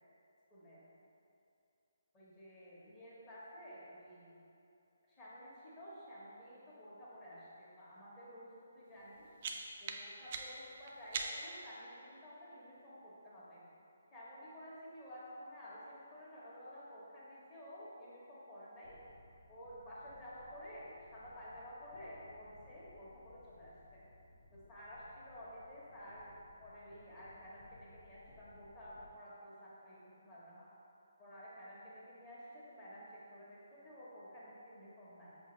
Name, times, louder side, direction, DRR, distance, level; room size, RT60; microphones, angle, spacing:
voice 1, 0.5-0.9 2.1-4.4 5.1-9.2 9.8-13.6 14.1-19.0 19.5-24.0 24.5-26.3 26.6-30.7 31.2-35.4, equal, 20° left, -9 dB, 1.1 m, -52 dB
sound 1, 9.0-11.7, right 4 dB, 40° right, 0.3 m, -43 dB
sound 2, 18.8-29.1, left 2 dB, 55° left, 0.6 m, -63 dB
5.6 x 2.5 x 3.1 m, 2.8 s
figure-of-eight pair, 145°, 0 cm